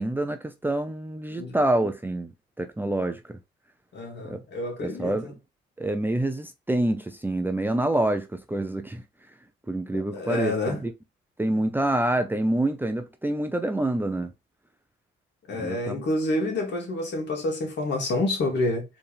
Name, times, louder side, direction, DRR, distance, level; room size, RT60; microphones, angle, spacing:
voice 1, 0.0-2.3 2.6-3.4 4.2-4.4 4.8-5.3 5.8-9.0 9.7-10.9 11.4-14.3 15.6-16.0, right 1 dB, 10° right, 0.5 m, -27 dB
voice 2, 3.9-5.3 10.1-10.8 15.5-18.9, left 2 dB, 60° left, 2.3 m, -28 dB
4.4 x 3.4 x 3.4 m
cardioid pair, 90°, 20 cm